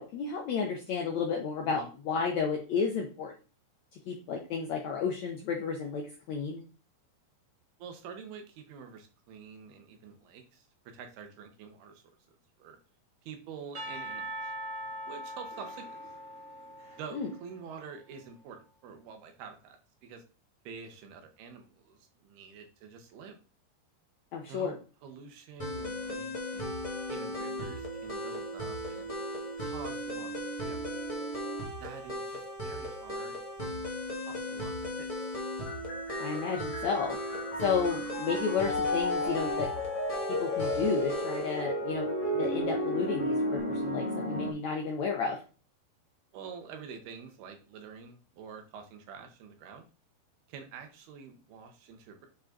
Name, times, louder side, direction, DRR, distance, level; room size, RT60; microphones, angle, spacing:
voice 1, 0.0-3.3 4.1-6.6 17.1-17.3 24.3-24.7 36.2-37.2 37.6-39.7 40.3-45.4, left 5 dB, 75° left, 2 dB, 1.6 m, -32 dB
voice 2, 7.8-12.8 13.2-14.5 15.1-16.0 17.0-20.2 20.6-23.4 24.5-26.7 27.1-29.1 29.6-31.1 31.8-33.9 34.2-35.3 46.3-49.9 50.5-52.3, right 6 dB, 85° right, 5 dB, 3.2 m, -47 dB
Percussion / Church bell, 13.7-17.9, right 1 dB, 60° right, 0.8 m, -41 dB
sound 1, 25.6-41.6, equal, 25° left, 0.7 m, -37 dB
sound 2, 35.7-44.5, left 1 dB, 45° left, 2.6 m, -33 dB
9.5 x 4.0 x 3.9 m, 0.36 s
omnidirectional pair, 4.4 m